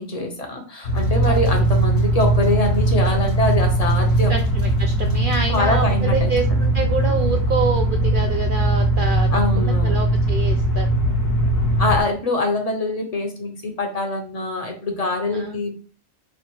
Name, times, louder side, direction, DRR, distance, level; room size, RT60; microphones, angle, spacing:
voice 1, 0.0-4.3 5.5-6.3 9.3-10.0 11.8-15.7, left 2 dB, 35° left, 3 dB, 0.7 m, -24 dB
sound 1, 0.8-12.0, right 1 dB, 75° left, 1.2 m, -19 dB
voice 2, 4.3-10.9 15.3-15.6, right 4 dB, 65° right, 4 dB, 0.5 m, -27 dB
3.3 x 2.4 x 4.4 m, 0.40 s
omnidirectional pair, 1.3 m